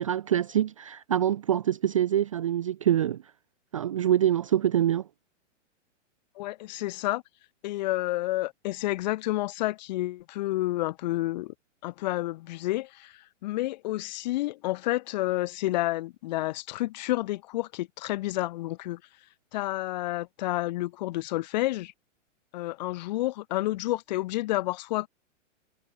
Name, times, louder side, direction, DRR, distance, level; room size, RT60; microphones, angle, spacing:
voice 1, 0.0-3.2 3.7-5.0, right 11 dB, 25° right, 0.4 m, -25 dB
voice 2, 6.3-7.2 7.6-11.5 11.8-19.0 19.5-21.9 22.5-25.1, left 17 dB, 35° left, 1.5 m, -30 dB
hypercardioid pair, 170°, 38 cm